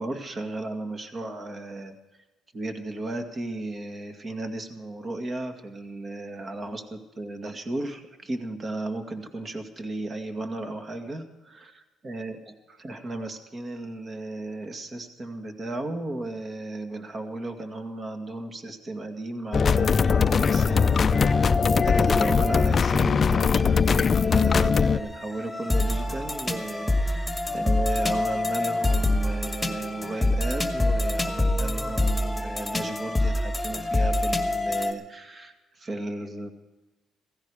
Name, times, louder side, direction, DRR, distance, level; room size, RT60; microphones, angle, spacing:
voice 1, 0.0-2.0 2.5-11.5 12.0-36.5, right 2 dB, 30° right, 6 dB, 2.1 m, -35 dB
sound 1, 19.5-25.0, left 5 dB, 35° left, 0.5 m, -21 dB
sound 2, 20.3-34.9, left 2 dB, 5° left, 2.0 m, -27 dB
16.5 x 16.0 x 4.9 m, 1.1 s
cardioid pair, 110°, 0 cm